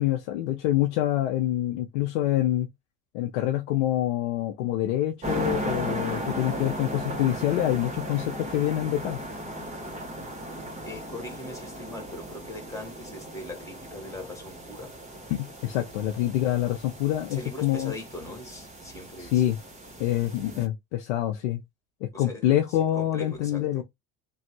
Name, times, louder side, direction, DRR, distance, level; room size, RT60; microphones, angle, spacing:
voice 1, 0.0-2.7 3.1-9.2 15.3-17.9 19.2-19.6 20.0-21.6 22.0-23.8, left 13 dB, 80° left, 0.6 m, -26 dB
sound 1, 5.2-20.7, right 1 dB, 20° right, 1.4 m, -36 dB
voice 2, 10.5-15.0 17.3-19.5 22.1-23.8, left 2 dB, 10° left, 1.7 m, -41 dB
3.0 x 2.3 x 3.0 m
hypercardioid pair, 75°, 35 cm